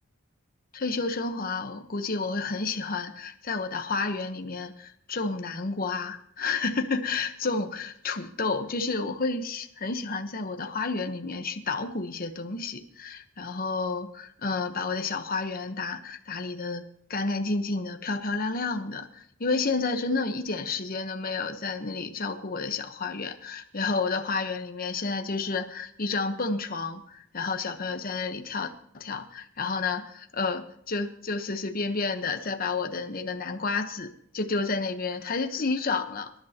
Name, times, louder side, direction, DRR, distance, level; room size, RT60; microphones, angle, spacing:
voice 1, 0.7-36.3, left 4 dB, 50° left, 6 dB, 1.1 m, -30 dB
25.5 x 11.5 x 2.9 m, 0.68 s
head